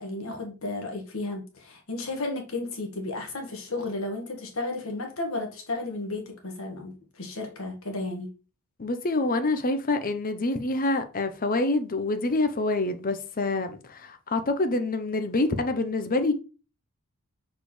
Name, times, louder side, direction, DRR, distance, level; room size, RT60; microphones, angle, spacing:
voice 1, 0.0-8.3, left 2 dB, 65° left, 1.7 m, -33 dB
voice 2, 8.8-16.3, left 2 dB, 40° left, 0.7 m, -26 dB
6.4 x 4.9 x 3.2 m
head